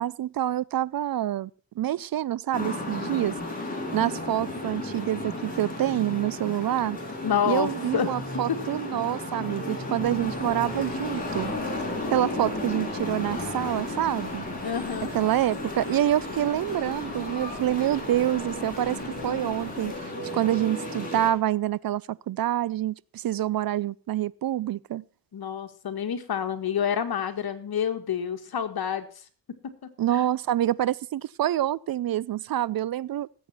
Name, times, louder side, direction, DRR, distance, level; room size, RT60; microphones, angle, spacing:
voice 1, 0.0-1.5 1.8-3.3 3.9-7.0 7.5-11.8 12.1-14.4 15.1-25.0 30.0-33.3, right 12 dB, 55° right, 0.5 m, -27 dB
sound 1, 2.5-21.3, left 2 dB, 20° left, 6.0 m, -34 dB
voice 2, 7.2-8.2 8.5-8.6 14.6-15.1 25.3-29.3 29.8-30.2, left 8 dB, 60° left, 1.9 m, -28 dB
sound 2, 10.0-20.0, right 2 dB, 75° right, 6.0 m, -51 dB
19.0 x 8.5 x 4.4 m
cardioid pair, 95°, 42 cm